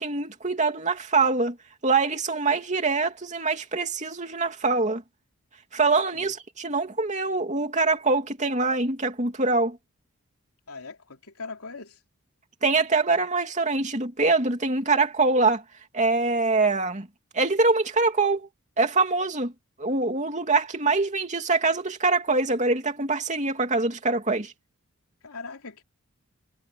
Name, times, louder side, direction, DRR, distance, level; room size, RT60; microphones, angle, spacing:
voice 1, 0.0-1.6 1.8-5.0 5.7-9.8 12.6-15.6 15.9-17.1 17.3-18.5 18.8-19.5 19.8-24.5, right 3 dB, 35° right, 2.8 m, -24 dB
voice 2, 10.7-12.0 25.2-25.8, left 4 dB, 80° left, 3.3 m, -40 dB
head